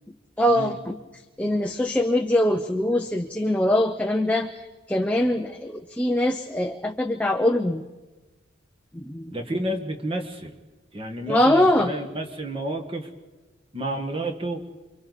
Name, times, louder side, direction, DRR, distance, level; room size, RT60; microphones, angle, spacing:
voice 1, 0.4-1.0 1.4-4.6 4.9-7.8 8.9-9.3 11.3-11.9, left 1 dB, 5° left, 3 dB, 0.6 m, -22 dB
voice 2, 9.3-10.6 10.9-13.1 13.7-14.6, right 1 dB, 25° right, 4 dB, 1.7 m, -30 dB
29.0 x 24.0 x 4.1 m, 1.2 s
head